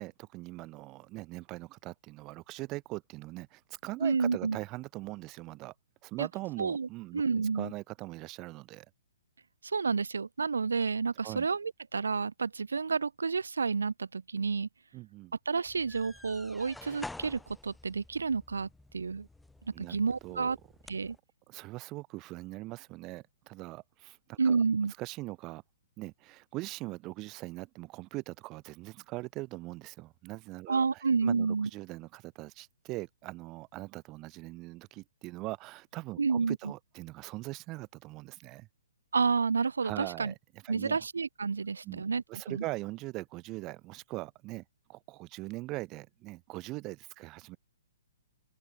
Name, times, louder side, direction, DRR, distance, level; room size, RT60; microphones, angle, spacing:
voice 1, 0.0-5.7 6.0-7.2 7.5-8.8 11.2-11.5 14.9-15.3 19.7-20.0 20.2-20.6 21.5-25.6 26.0-38.7 39.8-41.0 41.8-42.0 42.3-47.6, right 20 dB, 25° right, 1.3 m, -41 dB
voice 2, 4.0-4.6 6.2-6.3 6.6-7.7 9.6-14.7 15.5-19.3 19.8-20.6 20.9-21.2 24.4-24.9 30.7-31.7 36.2-36.6 39.1-40.3 40.7-42.6, right 5 dB, 70° right, 0.7 m, -30 dB
sound 1, 15.7-21.2, left 2 dB, 5° left, 1.8 m, -50 dB
open air
figure-of-eight pair, 125°, 0 cm